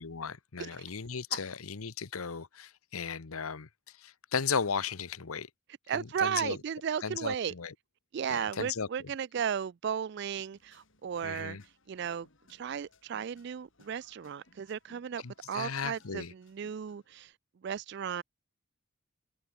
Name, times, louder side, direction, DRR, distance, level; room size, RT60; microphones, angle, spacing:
voice 1, 0.0-3.7 4.0-5.5 5.9-6.6 7.0-7.7 8.3-8.9 11.2-11.6 15.2-16.3, left 6 dB, 85° left, 0.9 m, -36 dB
voice 2, 5.9-7.5 8.1-11.6 11.9-17.3 17.6-18.2, right 7 dB, 50° right, 0.3 m, -35 dB
sound 1, 10.5-17.3, left 2 dB, 60° left, 3.7 m, -65 dB
head